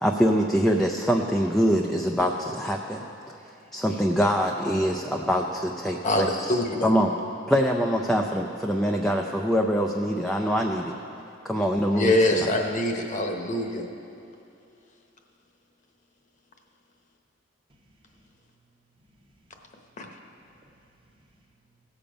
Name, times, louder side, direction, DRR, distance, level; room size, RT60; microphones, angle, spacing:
voice 1, 0.0-3.0 3.7-6.5 6.8-7.1 7.5-11.0 11.4-12.5, equal, ahead, 0.4 m, -24 dB
voice 2, 6.5-6.9 12.0-13.9 20.0-20.1, left 1 dB, 40° left, 1.0 m, -24 dB
voice 3, 17.7-19.7 20.0-21.8, right 1 dB, 25° right, 1.0 m, -64 dB
17.0 x 7.0 x 5.1 m
head